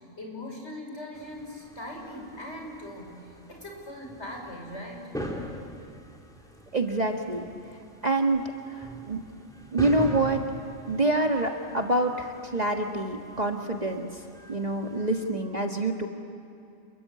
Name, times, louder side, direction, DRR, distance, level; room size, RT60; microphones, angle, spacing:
voice 1, 0.2-3.2 3.5-5.1, left 1 dB, 55° left, 0 dB, 6.2 m, -40 dB
sound 1, 1.1-15.3, equal, 5° left, 3.2 m, -42 dB
voice 2, 6.7-7.4 8.0-9.2 9.7-10.5 10.9-14.1 14.5-16.1, right 2 dB, 30° right, 2 dB, 1.7 m, -26 dB
29.0 x 22.5 x 8.6 m, 2.8 s
omnidirectional pair, 1.4 m